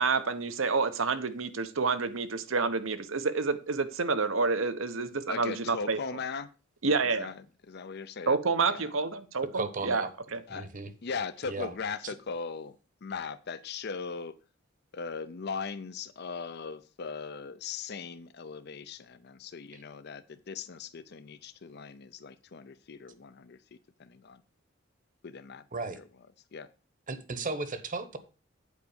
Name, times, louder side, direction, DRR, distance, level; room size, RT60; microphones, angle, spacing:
voice 1, 0.0-6.0 6.8-7.3 8.3-10.0 10.3-10.4, right 4 dB, 90° right, 0.9 m, -28 dB
voice 2, 5.3-6.5 7.2-8.4 8.7-8.9 10.5-10.7 11.0-12.7 13.0-14.3 14.9-23.6 24.0-24.4 25.2-25.6 26.0-26.1 26.5-26.7, left 5 dB, 55° left, 0.6 m, -39 dB
voice 3, 9.5-10.1 10.5-10.9 11.4-11.7 12.0-12.1 19.7-19.8 25.7-26.0 27.1-28.2, right 3 dB, 40° right, 1.0 m, -35 dB
8.4 x 4.7 x 6.9 m
head